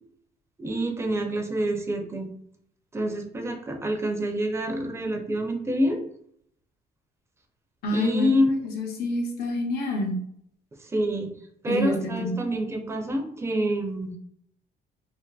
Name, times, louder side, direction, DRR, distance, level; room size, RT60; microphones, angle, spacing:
voice 1, 0.6-2.3 2.9-6.0 7.9-8.6 10.8-11.3 11.6-14.2, equal, 15° right, 4 dB, 0.5 m, -27 dB
voice 2, 7.8-8.3 8.6-10.2 11.7-12.3, left 2 dB, 65° left, 1 dB, 0.8 m, -27 dB
2.6 x 2.4 x 2.2 m, 0.68 s
cardioid pair, 110°, 17 cm